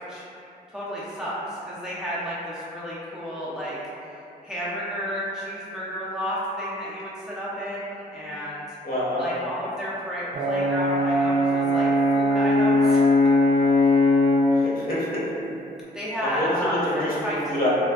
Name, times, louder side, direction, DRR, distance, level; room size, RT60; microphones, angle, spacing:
voice 1, 0.7-4.2 4.4-8.6 9.2-13.0 13.8-13.9 15.9-17.4, equal, 5° right, -8 dB, 0.4 m, -31 dB
voice 2, 8.8-9.2 14.6-15.3 16.2-17.7, left 1 dB, 60° left, -8 dB, 0.8 m, -27 dB
Brass instrument, 10.3-14.6, left 1 dB, 90° right, 0.4 m, -20 dB
3.2 x 2.1 x 2.3 m, 2.7 s
wide cardioid pair, 140°, 17 cm